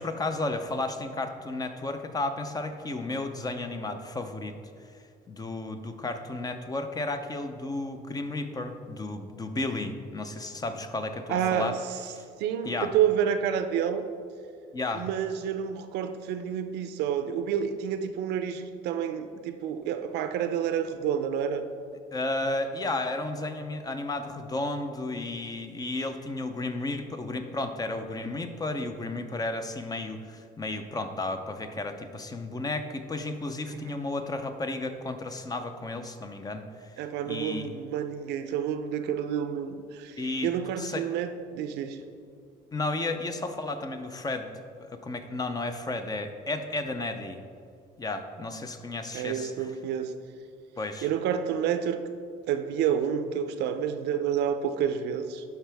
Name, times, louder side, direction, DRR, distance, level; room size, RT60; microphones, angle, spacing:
voice 1, 0.0-4.6 5.3-11.8 12.1-12.2 12.6-12.9 14.7-15.1 22.1-36.9 37.2-37.7 40.2-40.5 40.8-41.0 42.7-44.5 44.8-47.4 48.0-49.5 50.8-51.1, left 2 dB, 20° left, 7 dB, 0.6 m, -33 dB
voice 2, 11.3-11.8 12.4-14.0 14.9-21.7 33.7-34.1 37.0-42.0 49.1-50.1 51.0-52.0 52.5-55.4, right 8 dB, 85° right, 9 dB, 0.5 m, -29 dB
11.5 x 4.6 x 3.4 m, 2.3 s
cardioid pair, 110°, 17 cm